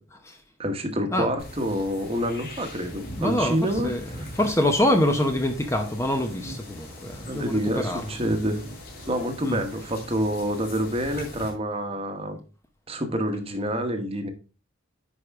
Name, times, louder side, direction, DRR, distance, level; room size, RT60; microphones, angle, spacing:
voice 1, 0.6-4.3 7.3-8.6 9.1-12.4 12.9-14.3, equal, 30° right, 1.2 m, -27 dB
sound 1, 1.4-11.5, left 1 dB, 50° left, 3.4 m, -41 dB
voice 2, 3.2-4.0 4.4-8.0 9.4-9.6, left 1 dB, 15° left, 0.8 m, -25 dB
10.0 x 4.7 x 3.5 m
head